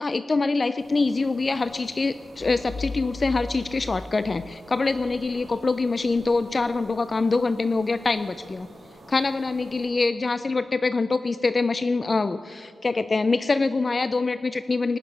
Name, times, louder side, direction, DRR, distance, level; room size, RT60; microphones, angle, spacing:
voice 1, 0.0-8.7 9.1-15.0, left 3 dB, 40° left, 13 dB, 0.4 m, -24 dB
sound 1, 0.8-9.9, right 1 dB, 55° right, 3.3 m, -48 dB
sound 2, 2.4-5.1, left 3 dB, 70° left, 2.0 m, -37 dB
18.0 x 6.7 x 9.7 m, 2.6 s
cardioid pair, 85°, 0 cm